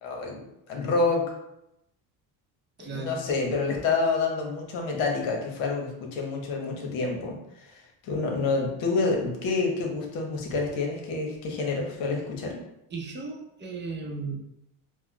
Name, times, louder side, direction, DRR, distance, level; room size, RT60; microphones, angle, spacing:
voice 1, 0.0-0.4 0.7-1.3 2.8-12.6, left 3 dB, 75° left, 1 dB, 0.9 m, -28 dB
voice 2, 2.8-3.2 12.9-14.3, right 4 dB, 25° right, 1 dB, 0.6 m, -35 dB
4.3 x 2.1 x 2.2 m, 0.83 s
supercardioid pair, 95°, 46 cm